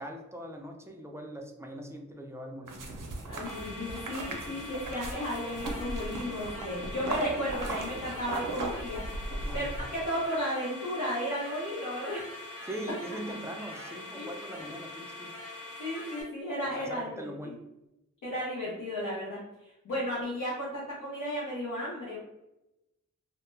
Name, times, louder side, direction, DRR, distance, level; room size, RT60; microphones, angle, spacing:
voice 1, 0.0-2.9 9.4-9.7 12.6-15.4 16.6-17.6, right 1 dB, 10° right, 2 dB, 0.3 m, -41 dB
sound 1, 2.7-10.1, right 2 dB, 85° right, 0.5 m, -37 dB
voice 2, 3.3-9.0 9.5-12.5 13.3-13.4 14.1-14.3 15.8-17.6 18.2-22.2, equal, 90° left, -8 dB, 0.7 m, -34 dB
sound 2, 3.4-16.2, left 2 dB, 45° left, 0.6 m, -43 dB
2.1 x 2.0 x 3.2 m, 0.91 s
wide cardioid pair, 85°, 31 cm